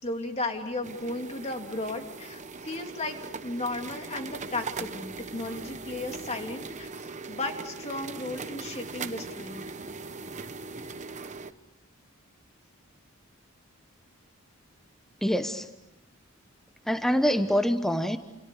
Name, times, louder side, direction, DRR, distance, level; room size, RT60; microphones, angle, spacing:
voice 1, 0.0-9.7, left 2 dB, 30° left, 4 dB, 3.0 m, -35 dB
sound 1, 0.8-11.5, right 4 dB, 35° right, 1.0 m, -40 dB
voice 2, 15.2-15.7 16.8-18.2, equal, ahead, 8 dB, 1.1 m, -25 dB
29.0 x 28.0 x 6.6 m, 0.97 s
head